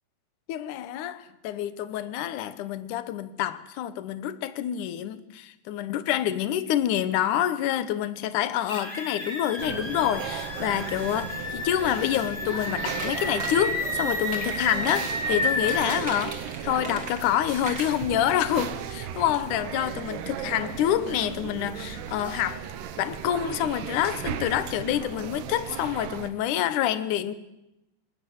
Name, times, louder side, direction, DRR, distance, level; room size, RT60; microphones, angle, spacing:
voice 1, 0.5-22.6 23.0-27.3, left 11 dB, 75° left, 1.9 m, -27 dB
sound 1, 8.7-15.8, left 2 dB, 15° left, 2.3 m, -31 dB
sound 2, 9.6-26.3, right 9 dB, 80° right, 3.4 m, -36 dB
sound 3, 13.0-13.6 14.2-15.1 15.5-17.3 17.6-18.5 18.9-19.0 19.3-19.4, right 3 dB, 25° right, 3.2 m, -38 dB
21.0 x 20.0 x 8.0 m
omnidirectional pair, 4.8 m